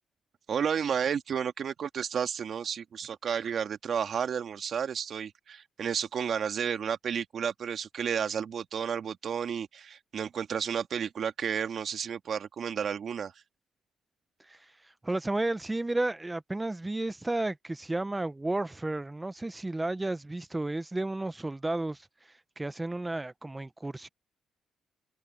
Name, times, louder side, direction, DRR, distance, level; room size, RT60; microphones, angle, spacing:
voice 1, 0.5-13.3, right 7 dB, 55° right, 1.6 m, -32 dB
voice 2, 14.4-24.1, right 2 dB, 15° right, 0.6 m, -33 dB
open air
cardioid pair, 90°, 0 cm